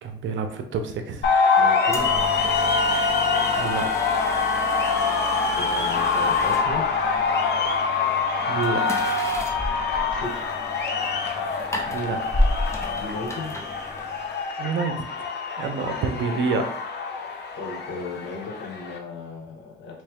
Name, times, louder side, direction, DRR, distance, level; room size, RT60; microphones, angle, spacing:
voice 1, 0.0-1.3 3.6-3.9 8.5-8.9 11.9-12.2 14.6-15.0 15.6-16.7, right 4 dB, 70° right, 6 dB, 0.7 m, -27 dB
sound 1, 1.2-19.0, left 4 dB, 60° left, 0.7 m, -25 dB
voice 2, 1.5-2.1 5.5-6.8 10.1-10.4 13.0-13.6 16.1-16.4 17.6-20.0, left 3 dB, 75° left, 1 dB, 1.2 m, -35 dB
sound 2, 1.9-14.4, left 1 dB, 15° left, 0.8 m, -32 dB
3.2 x 3.1 x 3.6 m, 0.63 s
cardioid pair, 90°, 20 cm